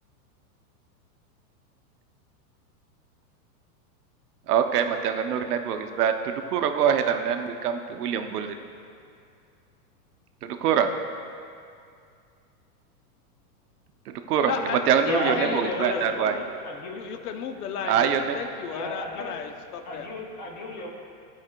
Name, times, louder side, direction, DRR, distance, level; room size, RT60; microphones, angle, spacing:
voice 1, 4.5-8.5 10.4-10.9 14.1-16.4 17.8-18.3, right 8 dB, 80° right, 7 dB, 0.7 m, -24 dB
voice 2, 14.4-16.0 16.9-20.1, left 7 dB, 75° left, 7 dB, 0.7 m, -34 dB
voice 3, 15.0-17.0 18.7-19.3 19.8-20.9, left 2 dB, 30° left, 0 dB, 0.5 m, -32 dB
12.0 x 4.8 x 2.2 m, 2.3 s
supercardioid pair, 175°, 46 cm